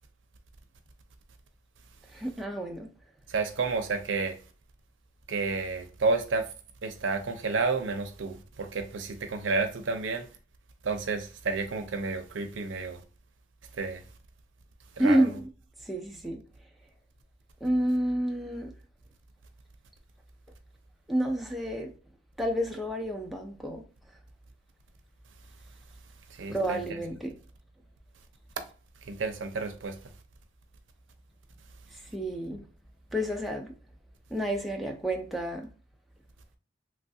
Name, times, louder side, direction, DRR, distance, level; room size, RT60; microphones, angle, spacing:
voice 1, 2.1-2.9 15.0-15.5 15.8-16.4 17.6-18.7 21.1-21.9 22.4-23.8 26.5-27.4 31.9-32.6 33.1-33.7 34.3-35.7, right 1 dB, ahead, 0.5 m, -29 dB
voice 2, 3.3-4.4 5.3-6.5 6.8-10.3 10.8-13.0 13.7-14.0 15.0-15.3 26.3-27.0 29.0-30.1, right 4 dB, 90° right, 0.6 m, -31 dB
3.2 x 2.3 x 2.7 m
head